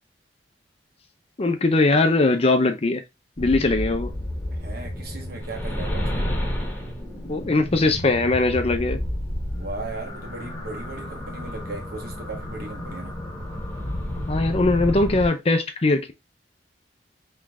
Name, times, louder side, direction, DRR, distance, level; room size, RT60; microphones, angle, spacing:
voice 1, 1.4-3.0 3.4-4.1 7.3-9.0 14.3-16.1, left 2 dB, 35° left, 0.6 m, -20 dB
sound 1, 3.4-15.3, left 1 dB, 10° left, 1.4 m, -31 dB
voice 2, 4.5-6.2 9.5-13.2, right 2 dB, 55° right, 1.5 m, -37 dB
3.8 x 3.2 x 3.5 m
head